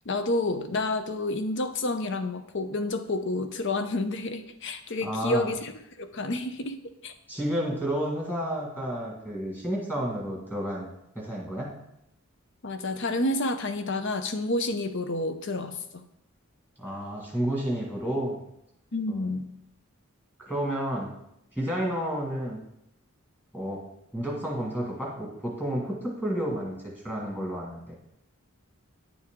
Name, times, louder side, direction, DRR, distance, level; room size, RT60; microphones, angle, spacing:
voice 1, 0.1-5.7 6.0-7.1 12.6-16.1 18.9-19.5, left 2 dB, 55° left, 9 dB, 0.7 m, -29 dB
voice 2, 5.0-5.5 7.3-10.9 11.2-11.7 16.8-18.4 19.1-19.3 20.4-21.1 21.6-22.6 23.5-23.8 24.1-28.0, right 1 dB, 10° left, -2 dB, 1.8 m, -31 dB
9.5 x 6.2 x 3.7 m, 0.80 s
head